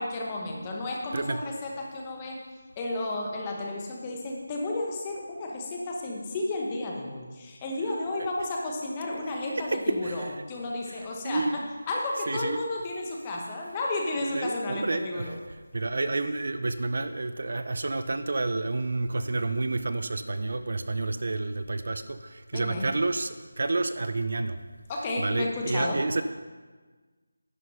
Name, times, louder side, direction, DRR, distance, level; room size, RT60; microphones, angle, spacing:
voice 1, 0.0-2.4 2.8-15.4 22.5-22.9 24.9-26.0, left 2 dB, 15° left, -1 dB, 1.0 m, -32 dB
voice 2, 10.0-10.3 10.9-11.7 12.3-12.6 14.3-24.6 25.2-26.2, right 2 dB, 50° right, 10 dB, 0.5 m, -30 dB
11.0 x 6.4 x 5.5 m, 1.4 s
figure-of-eight pair, 175°, 0 cm